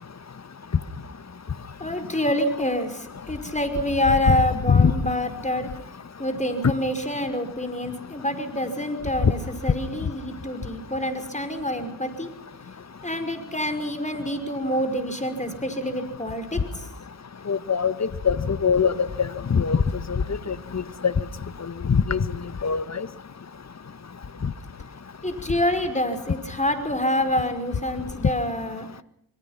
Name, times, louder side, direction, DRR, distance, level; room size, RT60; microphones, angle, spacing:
voice 1, 1.8-5.7 6.2-12.3 13.0-16.9 25.2-28.9, left 1 dB, 15° left, 8 dB, 5.4 m, -27 dB
voice 2, 17.5-19.8 20.1-21.1 21.8-22.3 22.6-23.1 24.4-24.5, left 6 dB, 35° left, 15 dB, 1.4 m, -22 dB
24.0 x 22.5 x 6.0 m, 0.73 s
hypercardioid pair, 40°, 46 cm